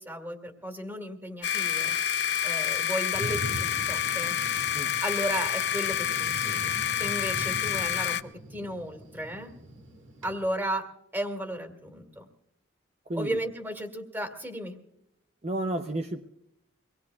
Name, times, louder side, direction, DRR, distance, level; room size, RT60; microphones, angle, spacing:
voice 1, 0.0-1.9 2.4-4.4 5.0-6.7 6.9-8.2 8.5-9.5 10.2-10.8 11.1-12.2 13.2-14.8, equal, 10° right, 5 dB, 2.1 m, -34 dB
sound 1, 1.4-8.2, left 9 dB, 60° left, 0.7 m, -28 dB
Thunder, 3.1-10.3, right 1 dB, 70° right, 2.0 m, -41 dB
voice 2, 13.1-13.4 15.4-16.2, right 1 dB, 35° right, 4 dB, 0.7 m, -31 dB
25.0 x 20.0 x 2.4 m, 0.79 s
head